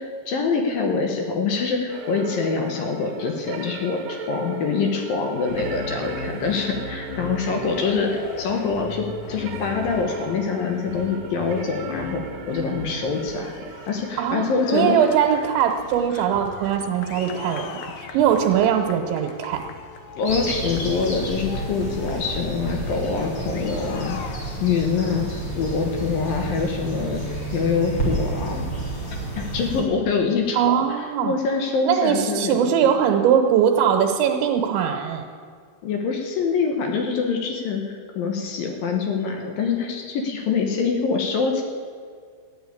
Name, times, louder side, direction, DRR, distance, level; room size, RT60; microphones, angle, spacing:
voice 1, 0.0-8.1 8.4-13.5 13.9-15.0 16.1-16.2 18.1-18.2 20.2-24.2 24.6-25.3 25.6-27.2 27.5-28.7 29.4-30.8 31.2-32.7 35.8-41.6, left 5 dB, 65° left, 3 dB, 2.5 m, -25 dB
sound 1, 1.9-14.2, right 6 dB, 60° right, 2.5 m, -38 dB
sound 2, 5.4-24.9, left 4 dB, 85° left, 1.8 m, -38 dB
voice 2, 14.2-19.6 30.5-31.3 31.9-35.2, right 8 dB, 80° right, 2 dB, 3.4 m, -21 dB
sound 3, 20.2-29.8, right 2 dB, 35° left, 4.2 m, -30 dB
14.0 x 10.0 x 8.6 m, 2.1 s
omnidirectional pair, 5.3 m